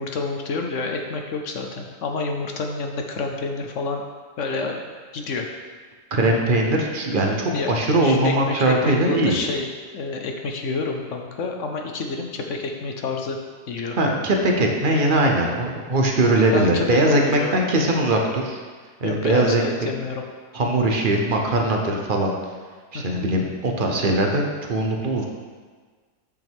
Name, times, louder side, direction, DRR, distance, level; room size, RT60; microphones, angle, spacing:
voice 1, 0.0-4.0 4.4-5.5 7.5-9.7 9.9-13.4 13.7-14.0 16.5-17.6 19.0-20.2 22.9-23.3, left 3 dB, 60° left, 3 dB, 0.9 m, -29 dB
voice 2, 6.1-9.4 13.9-18.6 19.0-19.9 20.5-22.3 22.9-24.4 24.7-25.3, right 1 dB, 45° right, 1 dB, 0.7 m, -21 dB
8.3 x 6.1 x 3.5 m, 1.5 s
omnidirectional pair, 1.7 m